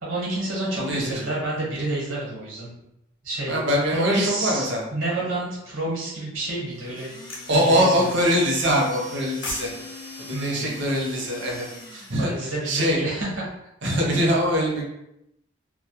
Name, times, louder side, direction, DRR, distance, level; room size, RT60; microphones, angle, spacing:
voice 1, 0.0-2.7 3.2-3.6 3.9-7.1 7.5-8.1 10.3-10.7 12.2-13.4, right 2 dB, 80° right, -5 dB, 1.0 m, -29 dB
voice 2, 0.7-1.2 3.5-4.8 7.5-9.7 10.3-11.7 11.9-12.3 12.6-13.1 13.8-14.8, equal, 60° right, -1 dB, 0.6 m, -23 dB
sound 1, 6.6-12.5, left 3 dB, 20° left, 0.4 m, -41 dB
sound 2, 7.3-7.5 9.1-9.7 10.0-10.2, left 3 dB, 75° left, 0.5 m, -33 dB
2.2 x 2.0 x 2.8 m, 0.84 s
head